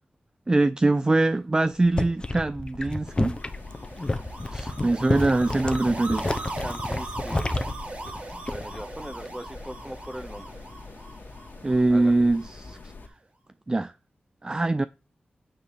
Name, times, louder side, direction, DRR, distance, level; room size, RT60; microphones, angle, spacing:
voice 1, 0.5-3.4 4.5-6.3 11.6-12.9 13.7-13.9 14.4-14.8, right 2 dB, 25° right, 0.4 m, -23 dB
sound 1, 1.7-8.8 9.1-9.5, left 2 dB, 30° left, 1.0 m, -30 dB
sound 2, 3.1-13.1, left 3 dB, 85° left, 2.3 m, -44 dB
sound 3, 3.2-12.5, right 2 dB, 45° right, 4.0 m, -39 dB
voice 2, 6.6-7.4 8.4-10.5 11.9-12.2, equal, 5° right, 1.0 m, -40 dB
9.8 x 4.0 x 7.1 m
wide cardioid pair, 75°, 3 cm